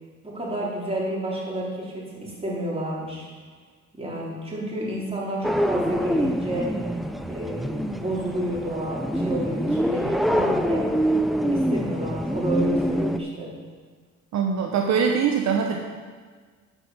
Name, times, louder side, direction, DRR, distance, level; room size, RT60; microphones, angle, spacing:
voice 1, 0.2-3.3 3.9-6.7 7.3-10.8 11.5-13.5, right 1 dB, 20° right, -5 dB, 3.8 m, -30 dB
sound 1, 5.4-13.2, equal, ahead, 0.5 m, -25 dB
voice 2, 14.3-15.8, right 6 dB, 65° right, 2 dB, 0.9 m, -22 dB
11.0 x 6.1 x 6.9 m, 1.5 s
cardioid pair, 90°, 30 cm